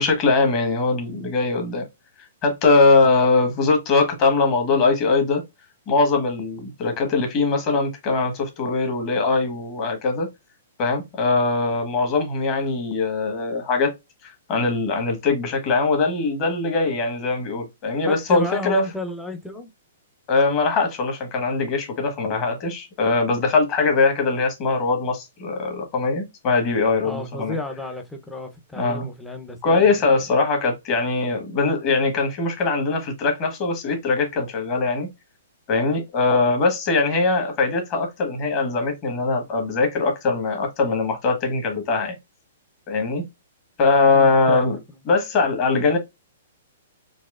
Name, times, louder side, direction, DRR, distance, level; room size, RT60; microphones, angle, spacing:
voice 1, 0.0-1.8 2.4-5.4 5.9-10.3 10.8-13.9 14.5-18.8 20.3-27.6 28.8-29.1 29.6-35.1 35.7-42.1 42.9-43.2 43.8-44.8 45.1-46.0, left 3 dB, 30° left, 1.2 m, -21 dB
voice 2, 18.1-19.7 27.0-30.3 44.1-44.8, left 2 dB, ahead, 0.6 m, -33 dB
4.1 x 2.8 x 2.4 m
hypercardioid pair, 160°, 0 cm